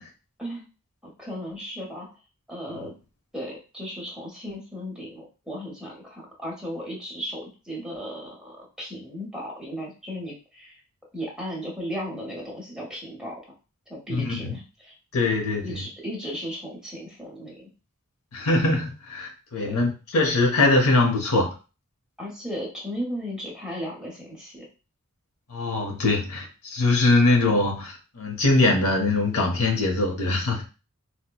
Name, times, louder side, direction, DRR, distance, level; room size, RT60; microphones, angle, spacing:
voice 1, 1.0-2.1 2.5-2.9 3.3-10.8 11.1-13.4 13.9-14.9 15.6-17.7 19.6-19.8 22.2-24.7, equal, 5° right, -3 dB, 1.0 m, -35 dB
voice 2, 14.1-14.6 15.1-15.8 18.3-21.5 25.5-30.6, left 2 dB, 75° left, 2 dB, 0.8 m, -22 dB
4.3 x 2.1 x 2.3 m, 0.33 s
head